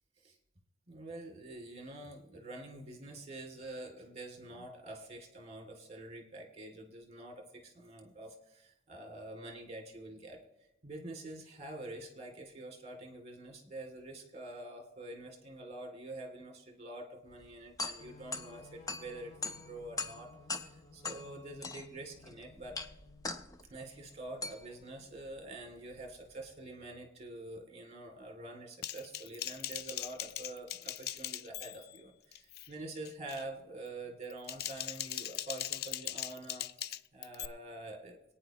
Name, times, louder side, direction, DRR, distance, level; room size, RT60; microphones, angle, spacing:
voice 1, 0.9-10.4 10.8-22.8 23.7-38.2, right 2 dB, 35° right, 2 dB, 2.5 m, -46 dB
sound 1, 17.3-26.5, left 3 dB, 20° left, 0.7 m, -43 dB
sound 2, 18.0-23.5, left 3 dB, 35° left, 1.8 m, -57 dB
Typing, 28.8-32.0 32.3-32.7 33.1-33.4 34.2-37.5, left 12 dB, 55° left, 0.4 m, -40 dB
24.5 x 9.4 x 3.0 m, 0.92 s
head